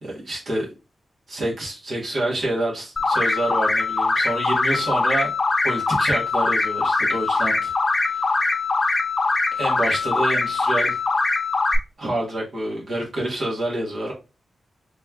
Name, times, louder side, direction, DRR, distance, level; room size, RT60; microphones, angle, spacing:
voice 1, 0.0-0.7 1.3-5.3 5.6-7.7 8.1-8.2 9.5-11.0 12.0-14.1, right 1 dB, 60° right, 1.7 m, -27 dB
sound 1, 3.0-11.8, left 3 dB, 40° left, 0.6 m, -22 dB
4.1 x 3.3 x 2.4 m
wide cardioid pair, 120°, 0 cm